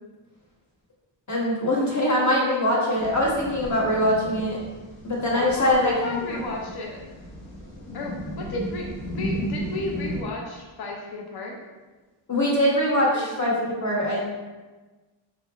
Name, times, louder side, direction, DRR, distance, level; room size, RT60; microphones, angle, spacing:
voice 1, 1.3-4.6 5.0-6.4 12.3-13.5 13.8-14.2, left 1 dB, 40° left, -4 dB, 1.0 m, -23 dB
sound 1, 3.0-10.2, equal, 80° left, 1.0 m, -35 dB
voice 2, 5.3-7.0 7.9-11.6 13.1-13.5, left 2 dB, 55° left, 0 dB, 0.6 m, -33 dB
3.7 x 3.2 x 2.4 m, 1.2 s
wide cardioid pair, 105°, 46 cm